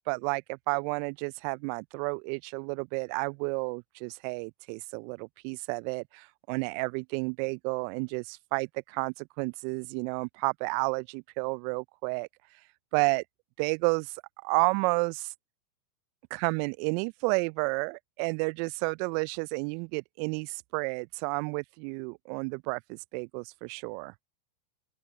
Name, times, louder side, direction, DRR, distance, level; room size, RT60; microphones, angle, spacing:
voice 1, 0.1-12.3 12.9-13.2 13.6-15.3 16.3-24.1, right 34 dB, 50° right, 0.5 m, -31 dB
open air
figure-of-eight pair, 90°, 0 cm